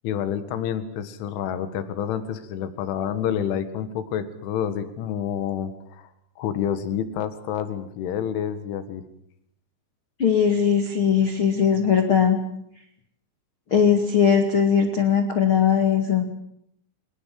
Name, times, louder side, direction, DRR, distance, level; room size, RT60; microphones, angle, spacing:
voice 1, 0.0-9.0, left 9 dB, 75° left, 11 dB, 4.2 m, -28 dB
voice 2, 10.2-12.4 13.7-16.2, left 7 dB, 45° left, 5 dB, 1.7 m, -19 dB
25.5 x 20.0 x 7.8 m, 0.73 s
omnidirectional pair, 5.7 m